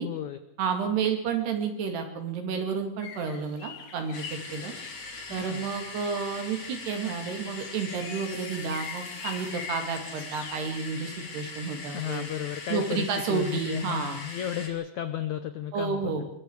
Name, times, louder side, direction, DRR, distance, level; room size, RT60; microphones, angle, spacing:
voice 1, 0.0-0.4 5.3-5.7 11.9-16.3, left 11 dB, 85° left, 10 dB, 1.7 m, -34 dB
voice 2, 0.6-4.7 5.3-12.3 12.7-14.2 15.7-16.3, right 5 dB, 75° right, 5 dB, 4.8 m, -31 dB
sound 1, 3.0-10.6, left 7 dB, 55° left, 2.2 m, -44 dB
sound 2, 4.1-14.7, left 3 dB, 35° left, 4.0 m, -41 dB
24.0 x 23.0 x 4.9 m, 0.70 s
omnidirectional pair, 4.8 m